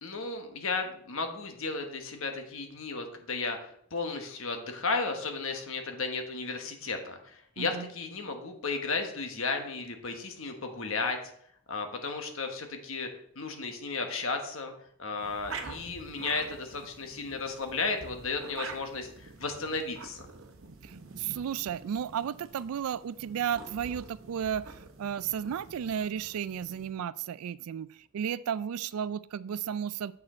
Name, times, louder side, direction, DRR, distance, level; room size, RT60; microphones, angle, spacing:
voice 1, 0.0-3.6 3.9-11.2 11.7-13.1 13.3-14.7 15.0-20.2, left 4 dB, 65° left, 5 dB, 1.3 m, -34 dB
voice 2, 7.6-7.9 20.8-27.9 28.1-30.1, right 8 dB, 80° right, 18 dB, 0.3 m, -33 dB
sound 1, 15.2-26.9, right 4 dB, 60° right, 0.9 m, -46 dB
7.7 x 6.3 x 4.3 m, 0.66 s
head